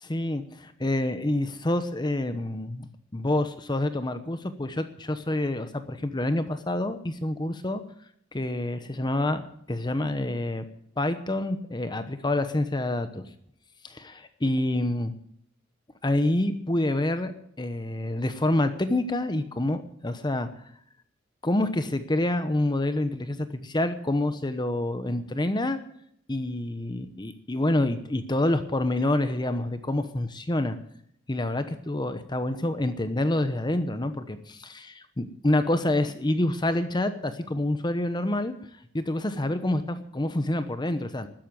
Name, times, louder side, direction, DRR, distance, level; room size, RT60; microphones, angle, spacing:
voice 1, 0.0-7.8 8.3-9.4 9.7-10.6 11.0-13.2 13.8-15.1 16.0-17.3 17.6-20.5 21.4-25.8 26.3-30.8 31.3-38.6 38.9-41.3, left 1 dB, 20° left, 10 dB, 0.9 m, -27 dB
13.0 x 10.0 x 9.0 m, 0.69 s
head